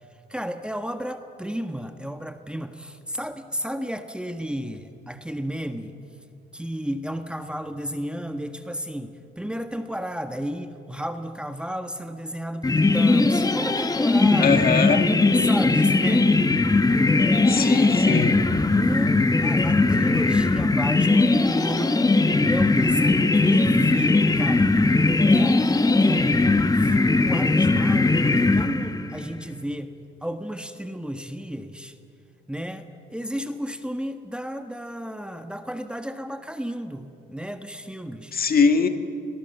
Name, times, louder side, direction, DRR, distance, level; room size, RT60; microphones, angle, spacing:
voice 1, 0.3-6.0 6.5-16.5 18.7-22.1 22.5-24.7 25.3-25.7 26.0-29.9 30.2-32.0 32.5-38.3, equal, 5° right, 7 dB, 1.4 m, -33 dB
sound 1, 12.6-29.2, left 3 dB, 20° left, 1.2 m, -19 dB
voice 2, 14.4-15.1 17.5-18.4 38.3-38.9, left 5 dB, 50° left, 7 dB, 2.0 m, -21 dB
30.0 x 22.0 x 7.1 m, 2.7 s
cardioid pair, 90°, 20 cm